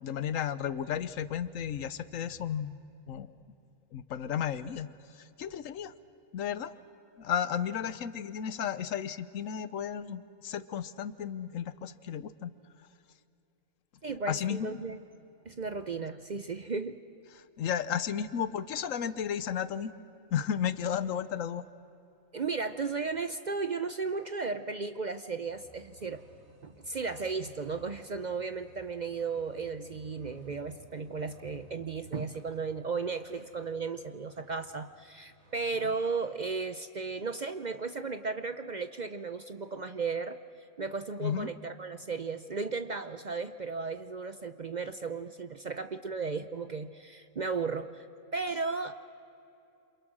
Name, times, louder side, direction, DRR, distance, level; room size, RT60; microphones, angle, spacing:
voice 1, 0.0-2.8 3.1-3.3 3.9-4.9 5.2-5.9 6.3-6.7 7.2-12.5 14.3-14.8 17.6-19.9 20.3-21.6 41.2-41.5, left 8 dB, 80° left, 15 dB, 1.2 m, -33 dB
voice 2, 14.0-15.0 15.5-17.0 22.3-26.2 26.6-40.4 40.8-48.0 48.3-49.0, right 4 dB, 45° right, 10 dB, 0.6 m, -35 dB
sound 1, 25.5-36.0, right 1 dB, 90° right, 3.2 m, -57 dB
28.5 x 27.0 x 6.1 m, 2.7 s
omnidirectional pair, 1.4 m